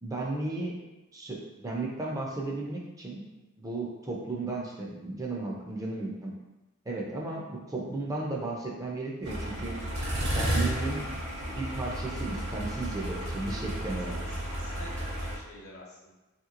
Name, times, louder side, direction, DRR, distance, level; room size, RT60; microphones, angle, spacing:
voice 1, 0.0-0.8 1.1-3.2 3.6-6.3 6.9-9.8 10.3-11.1 11.5-14.2, right 2 dB, 15° right, -2 dB, 0.4 m, -34 dB
sound 1, 9.2-15.4, right 1 dB, 55° right, 0.9 m, -32 dB
voice 2, 14.2-16.1, left 1 dB, 65° left, -3 dB, 0.7 m, -48 dB
3.0 x 2.8 x 2.4 m, 1.1 s
head